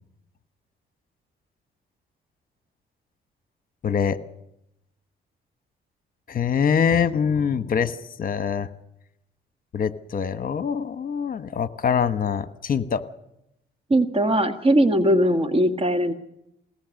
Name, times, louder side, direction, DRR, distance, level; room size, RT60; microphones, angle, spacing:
voice 1, 3.8-4.2 6.3-8.7 9.7-13.0, left 7 dB, 45° left, 12 dB, 1.2 m, -24 dB
voice 2, 13.9-16.1, right 1 dB, 30° right, 8 dB, 1.7 m, -20 dB
22.0 x 18.5 x 6.5 m, 0.82 s
cardioid pair, 90°, 20 cm